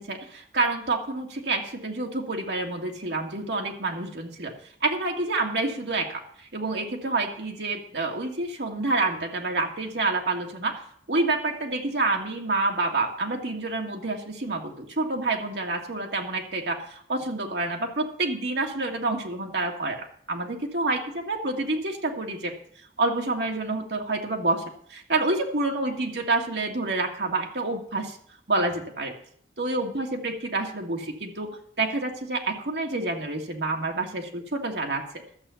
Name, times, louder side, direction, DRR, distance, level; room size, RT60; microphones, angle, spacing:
voice 1, 0.0-4.5 4.8-10.8 11.1-21.0 21.3-22.5 23.0-24.6 24.9-28.2 28.5-29.1 29.6-31.5 31.8-35.0, right 2 dB, 65° right, 1 dB, 1.9 m, -28 dB
12.5 x 7.6 x 6.9 m, 0.62 s
head